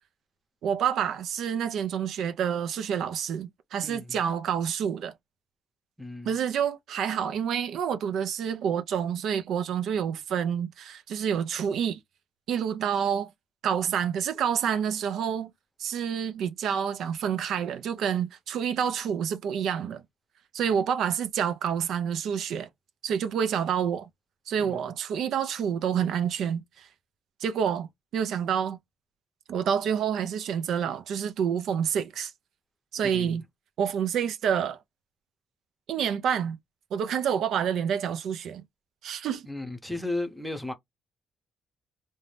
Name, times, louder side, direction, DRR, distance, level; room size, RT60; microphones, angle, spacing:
voice 1, 0.6-5.1 6.2-12.0 12.5-13.3 13.6-15.5 15.8-20.0 20.5-22.7 23.0-24.1 24.5-26.9 27.4-28.8 29.5-32.3 32.9-33.4 33.8-34.8 35.9-36.6 36.9-38.6 39.0-39.4, right 8 dB, 75° right, 0.4 m, -28 dB
voice 2, 3.8-4.2 6.0-6.3 24.6-24.9 33.0-33.4 39.4-40.7, left 2 dB, ahead, 0.7 m, -35 dB
2.6 x 2.1 x 3.2 m
cardioid pair, 90°, 0 cm